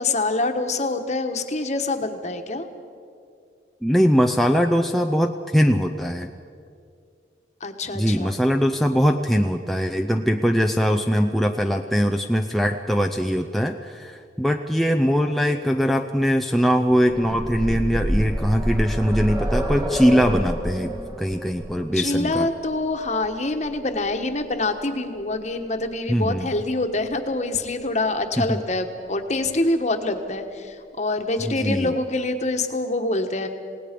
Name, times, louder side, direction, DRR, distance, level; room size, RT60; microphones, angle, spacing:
voice 1, 0.0-2.7 7.6-8.3 21.9-33.5, left 2 dB, 40° left, 6 dB, 1.3 m, -25 dB
voice 2, 3.8-6.3 7.9-22.5 26.1-26.5 28.4-28.6 31.5-31.9, equal, ahead, 3 dB, 0.5 m, -21 dB
sound 1, 16.9-24.7 25.8-25.9 26.3-26.4, equal, 20° right, 1.5 m, -28 dB
28.0 x 18.0 x 5.2 m, 2.4 s
head